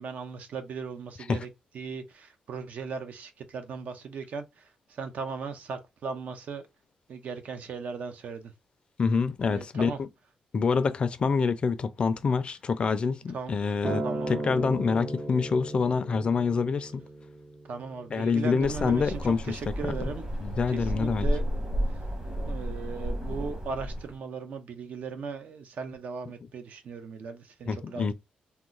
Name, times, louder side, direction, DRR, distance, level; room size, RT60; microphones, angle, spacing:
voice 1, 0.0-1.5 1.7-6.6 7.1-8.5 9.5-10.0 13.3-13.5 14.0-14.5 17.7-19.2 19.5-20.3 20.7-21.4 22.5-28.1, right 5 dB, 65° right, 0.7 m, -38 dB
voice 2, 9.0-10.1 10.5-17.0 18.1-20.1 20.4-21.3 27.7-28.1, left 5 dB, 40° left, 0.4 m, -27 dB
Acoustic guitar, 13.8-18.1 19.0-19.1, right 2 dB, 15° right, 0.5 m, -36 dB
sound 1, 18.6-24.1, equal, 35° right, 1.4 m, -32 dB
2.8 x 2.1 x 3.8 m
cardioid pair, 125°, 3 cm